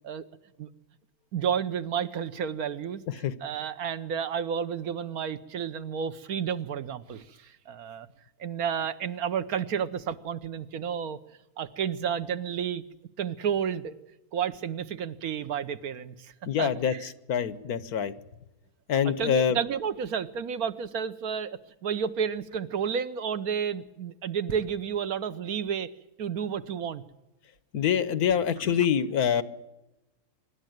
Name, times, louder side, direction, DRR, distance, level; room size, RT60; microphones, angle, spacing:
voice 1, 1.3-3.0 3.4-8.1 8.4-11.2 11.6-12.8 13.2-13.9 14.3-16.3 16.6-17.1 18.9-25.9 26.2-27.0, right 7 dB, 75° right, 12 dB, 1.4 m, -31 dB
voice 2, 16.5-16.9 17.3-18.1 18.9-19.6 27.7-29.4, left 8 dB, 80° left, 15 dB, 1.5 m, -25 dB
24.0 x 12.0 x 9.2 m, 1.0 s
omnidirectional pair, 1.6 m